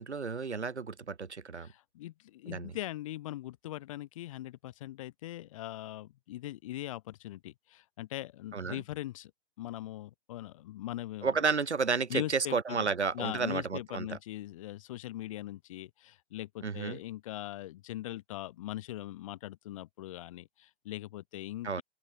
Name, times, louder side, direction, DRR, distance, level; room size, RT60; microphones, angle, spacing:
voice 1, 0.0-1.7 2.5-2.7 8.5-8.8 11.2-14.2 16.6-17.0 21.6-21.8, right 5 dB, 90° right, 0.6 m, -32 dB
voice 2, 1.6-9.3 9.6-11.4 12.1-21.8, left 15 dB, 30° left, 0.8 m, -41 dB
open air
figure-of-eight pair, 120°, 33 cm